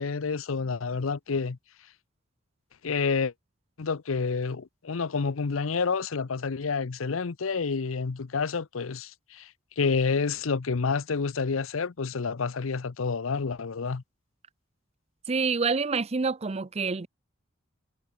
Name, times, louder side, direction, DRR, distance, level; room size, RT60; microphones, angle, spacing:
voice 1, 0.0-1.6 2.8-3.3 3.8-9.5 9.8-14.0, left 5 dB, 85° left, 0.7 m, -29 dB
voice 2, 15.3-17.1, right 4 dB, 30° right, 0.5 m, -27 dB
head